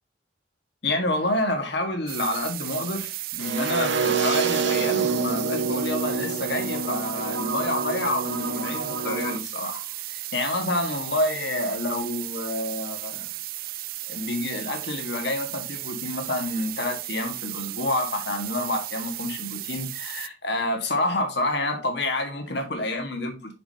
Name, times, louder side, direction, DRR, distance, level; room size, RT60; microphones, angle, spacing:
voice 1, 0.8-13.3 14.1-23.5, left 1 dB, 65° left, 1.6 m, -28 dB
sound 1, 2.1-20.3, right 16 dB, 50° right, 0.3 m, -35 dB
sound 2, 3.4-9.4, right 4 dB, 75° right, 0.9 m, -27 dB
6.9 x 6.1 x 2.8 m
head